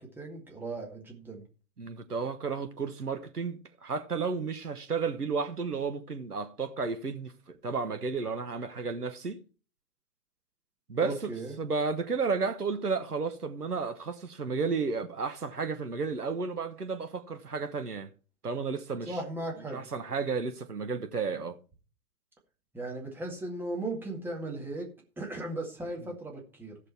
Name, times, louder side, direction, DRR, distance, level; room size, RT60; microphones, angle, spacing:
voice 1, 0.0-1.4 11.0-11.6 19.0-19.8 22.7-26.8, right 2 dB, 5° right, 2.0 m, -37 dB
voice 2, 1.8-9.4 10.9-11.3 11.6-18.1 18.4-19.1 19.7-21.6, right 4 dB, 85° right, 1.2 m, -32 dB
15.5 x 6.6 x 4.5 m
figure-of-eight pair, 110°, 45 cm